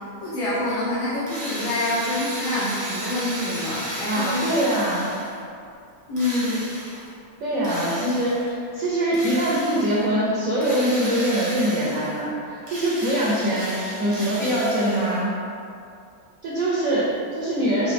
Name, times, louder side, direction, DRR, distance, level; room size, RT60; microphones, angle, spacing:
voice 1, 0.2-4.5 6.1-6.6, left 1 dB, 75° left, -9 dB, 1.6 m, -26 dB
Drill, 1.3-5.4 6.2-7.1 7.6-8.5 9.1-10.0 10.6-12.2 12.6-15.2, equal, 20° right, 0.7 m, -34 dB
voice 2, 4.1-5.1 7.4-15.3 16.4-17.9, right 1 dB, 60° right, -7 dB, 1.0 m, -23 dB
5.9 x 2.7 x 3.3 m, 2.5 s
omnidirectional pair, 2.1 m